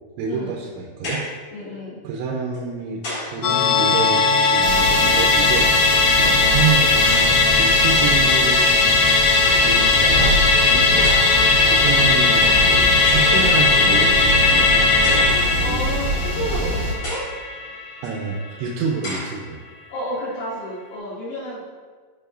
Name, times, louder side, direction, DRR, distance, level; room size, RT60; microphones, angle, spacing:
voice 1, 0.2-1.2 2.0-8.8 9.6-10.4 11.7-15.9 18.0-19.6, right 6 dB, 80° right, 0 dB, 2.9 m, -28 dB
sound 1, 1.0-1.4 2.5-3.4 4.5-5.4 7.0-7.4 8.5-8.6 8.9-9.3 10.3-10.4 11.0-11.5 13.0-13.4 15.0-15.4 16.0-16.1 17.0-17.4 18.0-18.1 19.0-19.4, left 1 dB, 50° left, 1.7 m, -33 dB
voice 2, 1.5-2.0 6.2-6.5 10.7-11.0 15.2-17.3 19.9-21.6, left 1 dB, 75° left, -9 dB, 4.3 m, -31 dB
Musical instrument, 3.4-18.1 18.4-18.5, left 4 dB, 90° left, 3.2 m, -17 dB
sound 2, 4.6-16.9, right 1 dB, 65° right, 2.0 m, -25 dB
11.0 x 4.8 x 2.6 m, 1.5 s
omnidirectional pair, 5.6 m